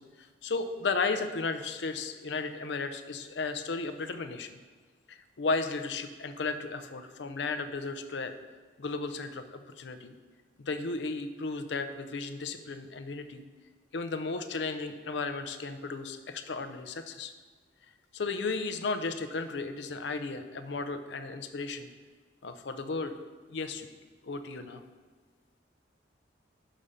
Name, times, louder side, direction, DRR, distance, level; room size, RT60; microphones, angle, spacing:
voice 1, 0.0-4.5 5.1-8.3 8.8-10.2 10.6-13.4 13.9-17.3 18.1-21.9 22.4-23.1 23.5-23.9 24.2-24.8, left 4 dB, 70° left, 9 dB, 0.6 m, -34 dB
6.5 x 5.0 x 5.5 m, 1.5 s
head